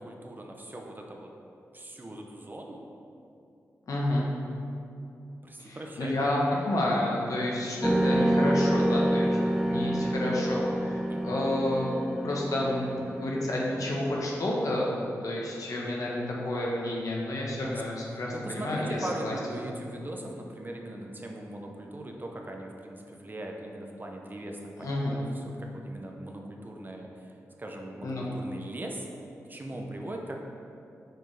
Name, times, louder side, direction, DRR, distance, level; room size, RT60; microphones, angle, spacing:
voice 1, 0.0-1.3 1.7-2.8 5.4-6.2 6.4-6.5 11.1-11.2 17.6-17.7 18.3-29.1 29.5-30.4, right 1 dB, 30° right, 1 dB, 0.8 m, -40 dB
voice 2, 3.9-4.3 5.6-9.4 9.6-11.9 12.2-14.9 15.2-19.3 24.8-25.2 28.0-28.3, left 1 dB, 70° left, -3 dB, 1.1 m, -30 dB
sound 1, 7.8-14.8, right 1 dB, 5° right, 0.4 m, -28 dB
6.4 x 4.5 x 3.4 m, 2.6 s
cardioid pair, 45°, 6 cm